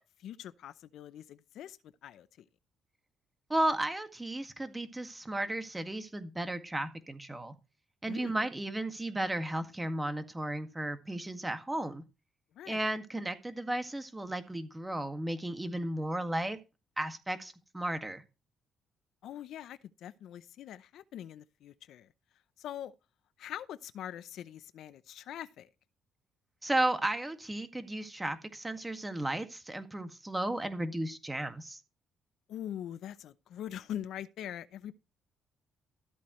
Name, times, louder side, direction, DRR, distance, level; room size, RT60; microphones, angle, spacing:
voice 1, 0.0-2.3 8.1-8.4 12.5-12.9 19.2-22.1 22.6-22.9 23.4-25.7 32.5-34.9, left 11 dB, 75° left, 0.6 m, -43 dB
voice 2, 3.5-7.5 8.0-12.0 12.7-16.6 17.0-18.2 26.6-31.8, right 1 dB, 15° right, 1.9 m, -34 dB
13.5 x 8.5 x 3.1 m
cardioid pair, 90°, 0 cm